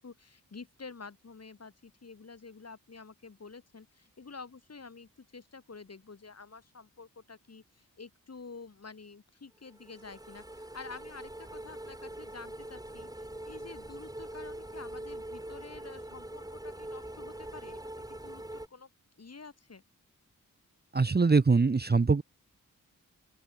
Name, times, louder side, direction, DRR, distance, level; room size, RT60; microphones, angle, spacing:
voice 1, 0.0-17.8 18.1-18.9 19.2-19.8, left 4 dB, 45° left, 2.0 m, -49 dB
sound 1, 9.7-18.7, right 1 dB, 10° right, 2.3 m, -43 dB
voice 2, 20.9-22.2, right 4 dB, 30° right, 0.8 m, -23 dB
open air
cardioid pair, 60°, 34 cm